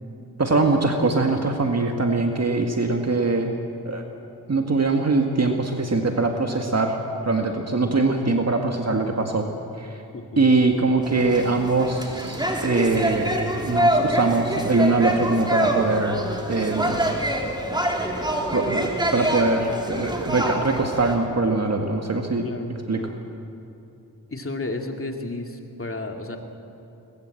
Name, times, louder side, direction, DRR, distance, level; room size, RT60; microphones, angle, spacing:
voice 1, 0.4-3.5 3.9-4.0 4.5-7.0 7.3-9.5 9.8-10.0 10.4-16.2 16.5-17.0 18.5-22.5 22.9-23.1, right 3 dB, 40° right, 3 dB, 1.8 m, -22 dB
voice 2, 10.1-10.5 10.9-11.1 22.4-23.1 24.3-26.4, left 2 dB, 35° left, 3 dB, 2.7 m, -33 dB
sound 1, 11.0-21.2, right 1 dB, 10° right, 3.6 m, -26 dB
22.0 x 20.5 x 7.7 m, 2.8 s
cardioid pair, 60°, 38 cm